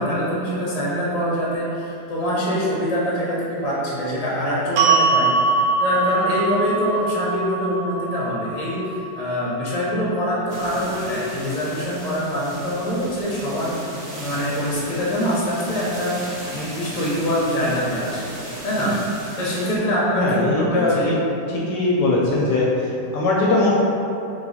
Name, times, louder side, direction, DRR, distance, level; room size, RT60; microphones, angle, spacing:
voice 1, 0.0-13.7 14.1-18.3 18.6-18.9 19.4-21.1, equal, 30° left, -7 dB, 0.7 m, -24 dB
sound 1, 4.8-11.0, right 4 dB, 85° right, 1.4 m, -23 dB
sound 2, 10.5-19.8, right 1 dB, 55° right, 0.9 m, -36 dB
voice 2, 20.2-21.2 21.7-22.7 23.1-23.7, left 2 dB, 75° left, -4 dB, 1.1 m, -20 dB
3.3 x 3.1 x 4.0 m, 2.8 s
omnidirectional pair, 2.1 m